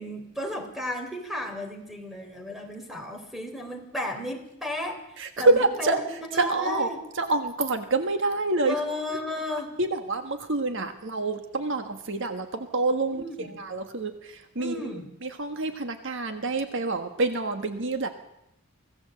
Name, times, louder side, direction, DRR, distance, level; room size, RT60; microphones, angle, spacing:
voice 1, 0.0-6.0 6.3-7.0 8.6-9.8 13.1-13.6 14.6-15.1, left 1 dB, ahead, 4 dB, 3.4 m, -34 dB
voice 2, 5.2-6.0 6.4-6.9 7.2-8.8 9.8-14.9 15.2-18.1, right 2 dB, 60° right, 7 dB, 1.5 m, -27 dB
24.5 x 16.5 x 7.7 m, 0.84 s
head